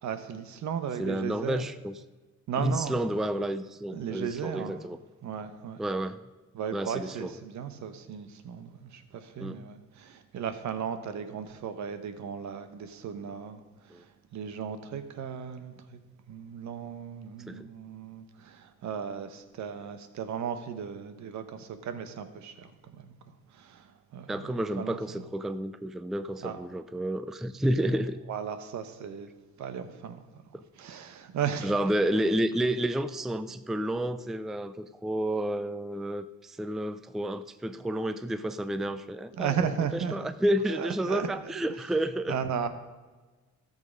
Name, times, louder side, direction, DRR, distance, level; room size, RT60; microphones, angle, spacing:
voice 1, 0.0-1.6 2.5-2.9 3.9-4.7 5.2-5.8 6.5-16.0 16.3-25.2 26.4-26.6 28.3-29.3 29.6-30.4 30.8-31.7 39.3-40.3 40.7-41.5 42.3-42.7, right 7 dB, 70° right, 9 dB, 1.1 m, -36 dB
voice 2, 1.0-2.0 2.6-5.0 5.8-6.2 6.7-7.3 9.4-9.6 13.9-14.0 17.5-17.7 24.3-28.2 30.5-30.6 31.6-42.4, right 1 dB, ahead, 12 dB, 0.4 m, -30 dB
13.0 x 6.6 x 5.1 m, 1.3 s
cardioid pair, 90°, 30 cm